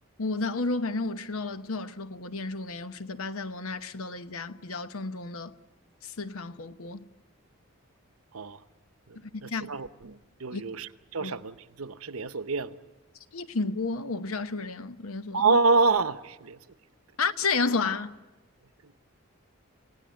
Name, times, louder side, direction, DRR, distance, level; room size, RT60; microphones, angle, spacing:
voice 1, 0.2-5.5 6.0-7.0 9.2-9.7 10.5-10.6 11.2-11.3 13.3-15.5 17.2-18.2, left 3 dB, 80° left, 0.9 m, -31 dB
voice 2, 9.1-12.7 15.3-16.6 18.8-18.9, right 4 dB, 85° right, 0.9 m, -27 dB
29.5 x 17.5 x 9.3 m
head